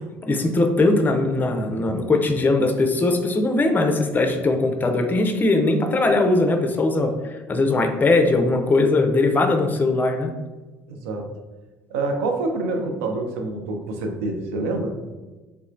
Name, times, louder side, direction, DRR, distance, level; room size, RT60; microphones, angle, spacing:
voice 1, 0.2-10.3, left 2 dB, 20° left, 6 dB, 0.5 m, -20 dB
voice 2, 10.9-11.2 11.9-15.0, right 2 dB, 70° right, 4 dB, 0.5 m, -26 dB
3.3 x 3.0 x 2.4 m, 1.2 s
figure-of-eight pair, 60°, 9 cm